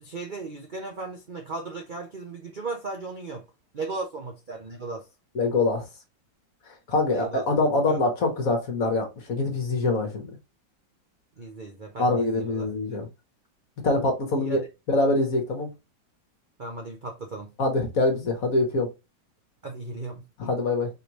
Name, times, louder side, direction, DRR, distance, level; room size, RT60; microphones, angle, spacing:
voice 1, 0.0-3.4 3.7-5.1 7.1-7.4 7.9-8.0 11.4-12.7 14.4-14.7 16.6-17.5 19.6-20.2, right 3 dB, 50° right, 0.5 m, -36 dB
voice 2, 5.3-5.8 6.9-10.3 12.0-13.1 13.8-14.6 14.9-15.7 17.6-18.9 20.4-20.9, left 2 dB, 50° left, 1.5 m, -24 dB
4.8 x 3.3 x 2.9 m
omnidirectional pair, 2.0 m